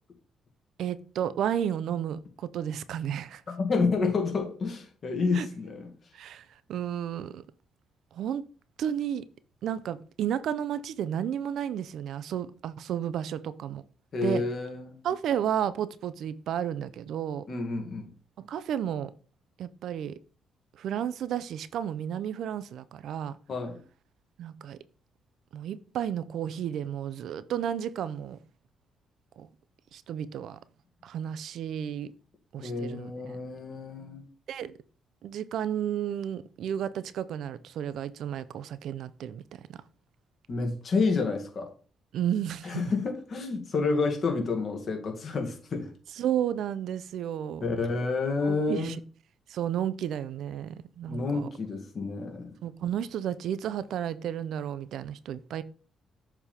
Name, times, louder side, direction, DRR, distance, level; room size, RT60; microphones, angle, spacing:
voice 1, 0.8-3.4 5.3-5.5 6.1-7.4 8.1-8.4 8.8-9.2 9.6-13.8 14.2-14.4 15.0-17.4 18.4-19.1 19.6-20.1 20.7-23.4 24.4-24.8 25.5-28.4 29.4-29.5 29.9-30.6 31.0-32.1 32.5-33.4 34.5-34.7 35.2-39.8 42.1-42.9 46.2-47.6 48.4-49.0 49.5-51.5 52.6-55.6, right 9 dB, 75° right, 0.5 m, -32 dB
voice 2, 3.6-5.9 14.1-14.9 17.5-18.1 23.5-23.8 32.6-34.2 40.5-41.7 42.6-45.9 47.6-48.9 51.1-52.5, left 4 dB, 50° left, 2.0 m, -29 dB
7.0 x 3.4 x 4.3 m
cardioid pair, 90°, 0 cm